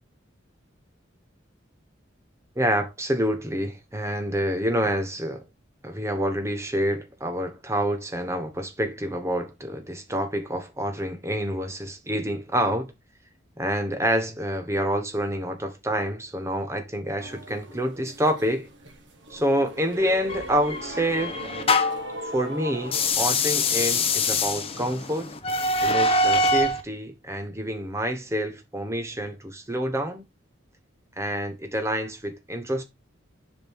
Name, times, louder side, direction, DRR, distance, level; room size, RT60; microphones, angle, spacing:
voice 1, 2.6-5.4 5.8-12.9 13.6-18.7 19.3-21.4 22.3-25.3 25.8-30.2 31.2-32.8, equal, 15° right, 1.2 m, -27 dB
sound 1, 17.2-23.1, right 1 dB, 65° right, 1.7 m, -39 dB
sound 2, 20.3-22.1 22.8-26.8, left 2 dB, 30° left, 0.9 m, -24 dB
7.4 x 5.1 x 3.6 m
head